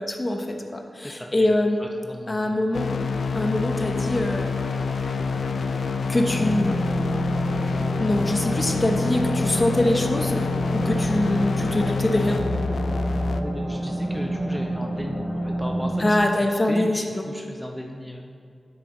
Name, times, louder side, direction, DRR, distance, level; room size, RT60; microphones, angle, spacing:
voice 1, 0.0-1.8 2.3-2.9 3.3-4.6 6.1-6.9 8.0-10.4 10.7-12.4 16.0-17.2, left 1 dB, 35° left, 3 dB, 0.9 m, -24 dB
voice 2, 1.0-1.5 1.8-2.5 13.4-18.2, equal, 5° left, 1 dB, 0.6 m, -36 dB
sound 1, 2.7-13.4, left 5 dB, 80° left, 0.3 m, -27 dB
sound 2, 3.8-11.8, right 1 dB, 80° right, 1.3 m, -44 dB
sound 3, 6.3-16.3, right 1 dB, 15° right, 2.1 m, -29 dB
9.7 x 7.8 x 3.0 m, 2.4 s
cardioid pair, 60°, 0 cm